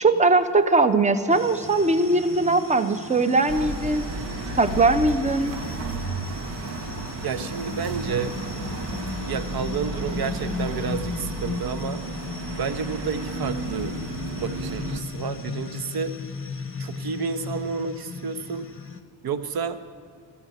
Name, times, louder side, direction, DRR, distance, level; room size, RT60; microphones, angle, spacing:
voice 1, 0.0-4.0 4.6-5.5, right 3 dB, 15° right, 10 dB, 0.6 m, -20 dB
sound 1, 1.3-19.0, left 5 dB, 30° left, 0.7 m, -36 dB
sound 2, 3.5-15.0, right 3 dB, 80° right, 1.1 m, -33 dB
voice 2, 7.2-8.3 9.2-12.0 12.6-14.0 14.3-16.1 16.8-18.7 19.2-19.8, right 6 dB, 60° right, 11 dB, 0.8 m, -30 dB
13.0 x 7.2 x 9.1 m, 2.1 s
cardioid pair, 115°, 42 cm